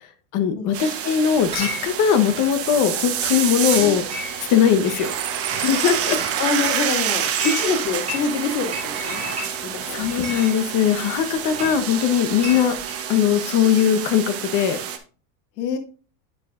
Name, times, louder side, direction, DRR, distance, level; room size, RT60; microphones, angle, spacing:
voice 1, 0.3-4.0 4.5-5.1 5.6-6.2 9.9-12.7 13.1-14.8, left 8 dB, 40° left, 8 dB, 1.1 m, -20 dB
sound 1, 0.7-15.0, right 9 dB, 30° right, 1.0 m, -28 dB
Chatter / Chink clink, 1.3-13.0, equal, 15° right, 3.7 m, -36 dB
voice 2, 6.4-10.0 15.6-15.8, left 5 dB, 90° left, 5 dB, 2.2 m, -26 dB
8.9 x 7.1 x 2.5 m, 0.36 s
supercardioid pair, 150°, 47 cm